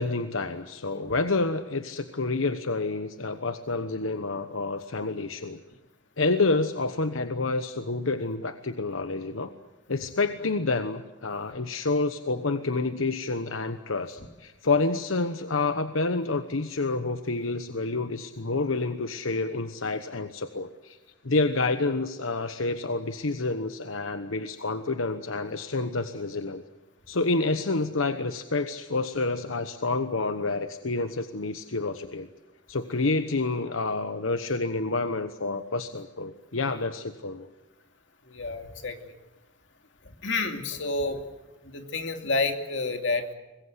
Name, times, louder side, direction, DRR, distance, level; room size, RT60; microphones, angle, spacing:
voice 1, 0.0-5.6 6.2-9.5 9.9-21.0 21.2-26.6 27.1-32.3 32.7-37.5, left 3 dB, 85° left, 9 dB, 1.1 m, -28 dB
voice 2, 38.3-39.0 40.0-41.2 41.6-43.3, left 3 dB, 65° left, 5 dB, 2.8 m, -29 dB
25.5 x 21.5 x 8.0 m, 1.1 s
head